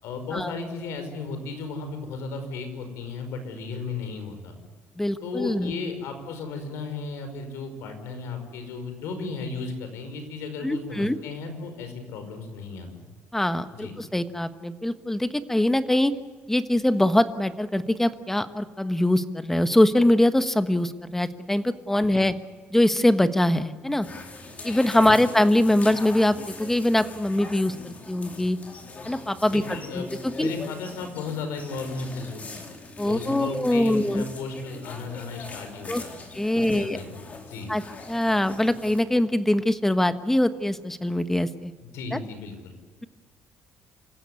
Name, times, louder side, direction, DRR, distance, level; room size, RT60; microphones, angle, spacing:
voice 1, 0.0-4.5 5.2-13.1 13.7-14.0 22.1-22.3 25.1-25.2 29.5-30.1 30.4-32.6 33.0-36.3 36.6-37.7 41.8-42.8, left 4 dB, 90° left, 7 dB, 5.3 m, -35 dB
voice 2, 5.0-5.7 10.6-11.2 13.3-16.1 16.5-22.3 22.7-24.1 24.6-28.6 29.0-29.6 29.9-30.1 30.4-30.5 33.0-34.2 35.9-36.0 36.3-37.0 37.7-37.8 38.1-41.7 42.1-42.2, left 1 dB, 5° left, 10 dB, 1.3 m, -23 dB
sound 1, 24.0-39.0, left 3 dB, 35° left, 4.1 m, -42 dB
27.0 x 15.5 x 9.7 m, 1.5 s
cardioid pair, 115°, 4 cm